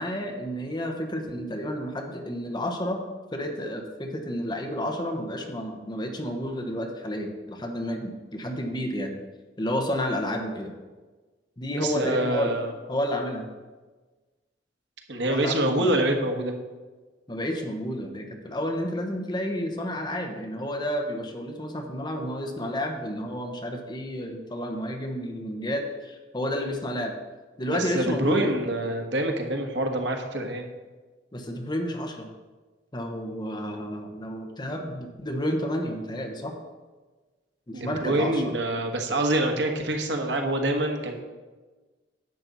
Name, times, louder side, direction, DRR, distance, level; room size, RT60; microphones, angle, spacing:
voice 1, 0.0-3.0 3.3-9.1 9.6-10.7 11.6-12.5 12.9-13.5 15.3-15.9 17.3-27.1 27.6-28.5 31.3-32.3 32.9-36.5 37.7-38.5, equal, 25° left, 3 dB, 1.1 m, -31 dB
voice 2, 11.8-12.7 15.1-16.5 27.7-30.7 37.7-41.2, right 1 dB, 80° right, 3 dB, 1.4 m, -26 dB
10.5 x 7.6 x 4.1 m, 1.3 s
head